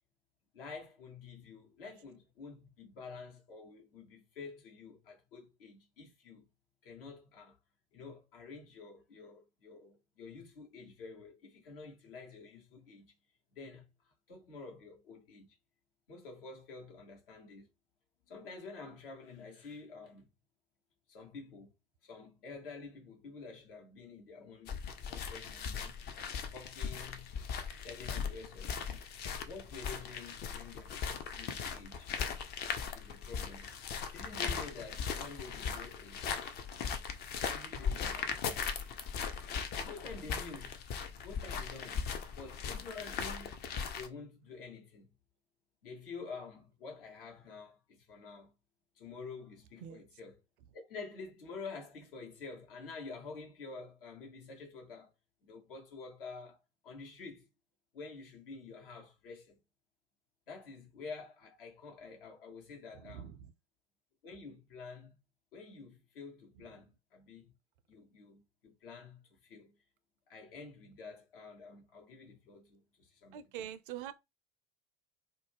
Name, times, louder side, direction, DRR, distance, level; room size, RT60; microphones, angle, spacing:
voice 1, 0.5-6.4 6.8-7.6 7.9-13.1 13.5-15.5 16.1-17.7 18.3-20.3 21.1-21.7 22.0-26.0 26.5-27.3 27.7-28.8 29.4-30.9 31.3-32.2 32.9-33.7 34.1-36.2 37.5-38.3 39.8-40.8 41.2-42.1 42.3-43.5 43.9-45.1 45.8-48.5 48.9-50.3 50.7-55.1 55.4-56.6 56.8-57.5 57.9-59.6 60.5-63.3 64.2-65.2 65.5-67.5 67.9-69.7 70.3-73.4, left 4 dB, 65° left, 1.1 m, -49 dB
sound 1, 24.7-44.1, left 6 dB, 35° left, 0.5 m, -39 dB
voice 2, 49.8-50.2 62.9-63.5 66.5-66.8 73.3-74.1, right 10 dB, 60° right, 0.5 m, -45 dB
2.4 x 2.1 x 3.3 m
figure-of-eight pair, 70°, 30 cm